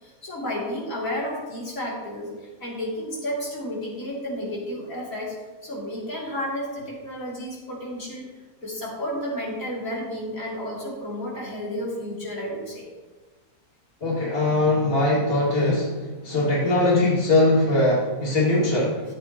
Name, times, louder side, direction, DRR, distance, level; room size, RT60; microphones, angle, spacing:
voice 1, 0.0-5.4 5.6-12.9, equal, 65° left, -5 dB, 3.4 m, -32 dB
voice 2, 14.0-16.0 16.2-19.0, left 2 dB, 40° left, -6 dB, 2.8 m, -21 dB
15.5 x 8.8 x 3.0 m, 1.3 s
omnidirectional pair, 1.5 m